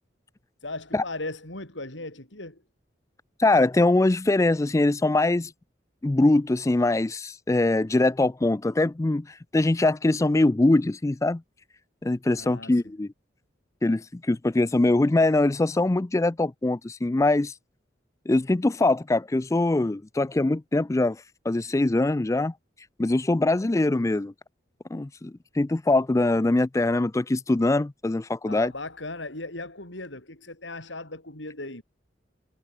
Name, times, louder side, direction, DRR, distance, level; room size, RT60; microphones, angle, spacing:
voice 1, 0.6-2.6 12.4-12.8 28.4-31.8, left 2 dB, 85° left, 8.0 m, -37 dB
voice 2, 3.4-5.5 6.0-11.4 12.0-13.1 13.8-17.5 18.3-22.5 23.0-24.3 24.9-28.7, left 2 dB, 15° left, 0.4 m, -23 dB
head